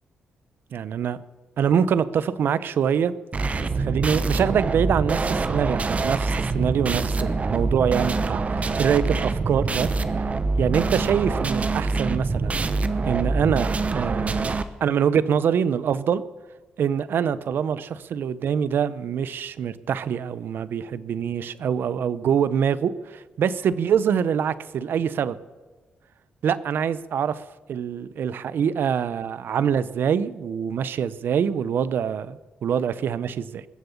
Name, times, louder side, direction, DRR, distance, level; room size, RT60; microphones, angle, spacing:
voice 1, 0.7-1.2 1.6-3.1 3.7-9.9 10.1-10.3 10.6-12.6 13.0-14.5 14.8-16.2 16.8-25.4 26.4-27.4 27.7-33.7, right 8 dB, 70° right, 16 dB, 0.7 m, -24 dB
sound 1, 3.3-14.6, right 3 dB, 40° right, 1.0 m, -25 dB
21.0 x 7.7 x 7.1 m, 1.3 s
cardioid pair, 70°, 4 cm